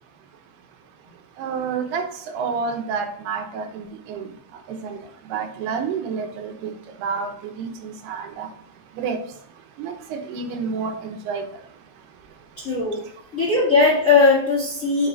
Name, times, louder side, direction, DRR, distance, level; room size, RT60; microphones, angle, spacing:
voice 1, 1.4-2.0 2.3-4.3 4.8-5.0 5.3-6.7 7.0-7.3 7.6-8.5 9.0-9.2 9.8-11.4, right 5 dB, 80° right, 4 dB, 2.9 m, -29 dB
voice 2, 12.6-13.0 13.3-15.1, left 4 dB, 35° left, -3 dB, 1.4 m, -18 dB
7.6 x 5.6 x 4.0 m, 0.64 s
omnidirectional pair, 4.7 m